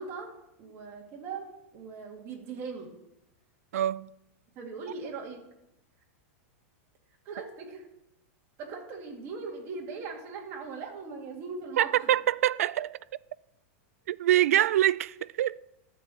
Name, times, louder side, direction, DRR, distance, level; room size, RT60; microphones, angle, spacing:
voice 1, 0.0-2.9 4.6-5.5 7.2-7.9 8.6-12.1, right 4 dB, 35° right, 2.3 m, -40 dB
voice 2, 3.7-4.1 11.8-13.0 14.1-15.6, right 12 dB, 80° right, 0.4 m, -25 dB
12.0 x 4.7 x 8.5 m
supercardioid pair, 155°, 8 cm